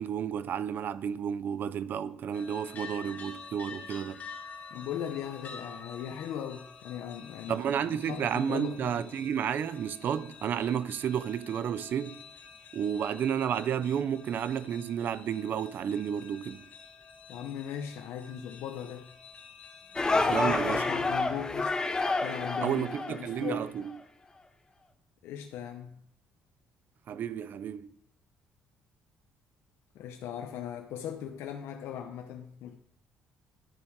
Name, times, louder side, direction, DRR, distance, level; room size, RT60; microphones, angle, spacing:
voice 1, 0.0-4.2 7.5-12.2 12.7-16.6 20.3-20.9 22.6-24.0 27.1-27.9, right 8 dB, 50° right, 0.5 m, -31 dB
sound 1, 2.3-20.4, left 5 dB, 40° left, 1.5 m, -49 dB
voice 2, 4.7-9.0 17.3-19.1 20.1-21.7 22.2-23.7 25.2-26.0 29.9-32.7, left 9 dB, 85° left, 0.8 m, -38 dB
sound 2, 20.0-23.6, left 3 dB, 15° left, 0.8 m, -29 dB
10.5 x 7.2 x 4.7 m
cardioid pair, 150°, 4 cm